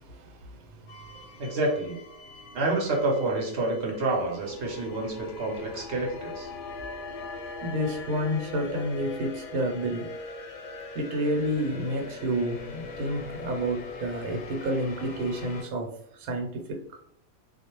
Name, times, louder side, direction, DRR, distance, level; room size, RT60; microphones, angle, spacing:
voice 1, 0.0-1.6 2.2-2.6 7.6-10.1 10.9-17.0, right 1 dB, 80° right, 1.0 m, -30 dB
sound 1, 0.9-15.6, left 4 dB, 65° left, 0.7 m, -41 dB
voice 2, 1.4-2.0 2.5-6.5, right 2 dB, 55° right, 0.9 m, -28 dB
2.4 x 2.0 x 2.9 m
omnidirectional pair, 1.5 m